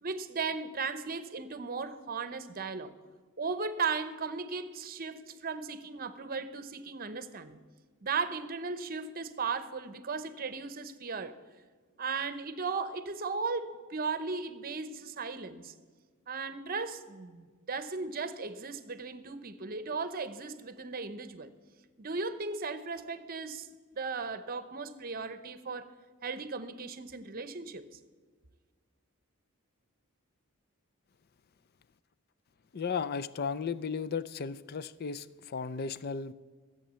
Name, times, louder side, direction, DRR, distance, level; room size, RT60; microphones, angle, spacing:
voice 1, 0.0-3.0 3.4-7.6 8.0-11.4 12.0-15.7 16.3-21.5 22.0-23.7 23.9-25.9 26.2-28.0, right 4 dB, 40° right, 12 dB, 0.8 m, -36 dB
voice 2, 32.7-36.3, left 5 dB, 45° left, 16 dB, 0.5 m, -35 dB
14.5 x 7.9 x 7.5 m, 1.5 s
head